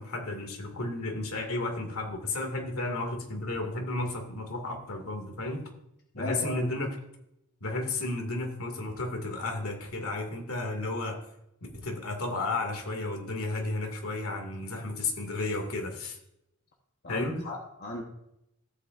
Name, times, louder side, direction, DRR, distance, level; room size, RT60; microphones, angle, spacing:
voice 1, 0.0-5.7 6.1-6.9 7.6-11.3 11.7-16.2 17.1-17.5, left 2 dB, 80° left, 3 dB, 2.2 m, -33 dB
voice 2, 6.1-6.7 17.0-18.0, left 1 dB, 45° left, 0 dB, 1.1 m, -37 dB
14.5 x 8.4 x 2.5 m, 0.82 s
head